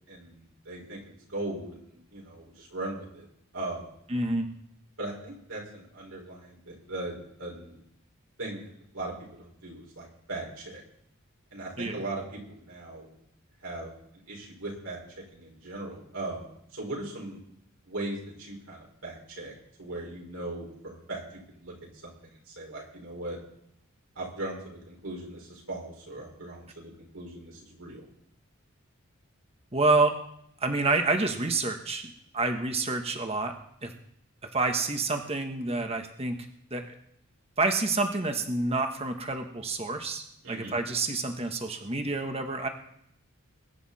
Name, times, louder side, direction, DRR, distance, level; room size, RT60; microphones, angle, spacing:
voice 1, 0.1-1.0 1.3-3.3 3.5-3.8 5.0-7.8 8.4-10.8 11.5-13.1 13.6-13.9 14.3-16.4 16.7-17.4 17.8-19.5 19.8-22.1 22.5-23.4 24.2-28.1 40.4-40.8, right 2 dB, 75° right, -3 dB, 5.6 m, -39 dB
voice 2, 4.1-4.5 11.8-11.9 29.7-30.2 30.6-33.5 33.8-33.9 34.5-36.3 36.7-36.8 37.6-42.7, right 3 dB, 30° right, 5 dB, 1.4 m, -28 dB
22.0 x 9.9 x 4.3 m, 0.72 s
head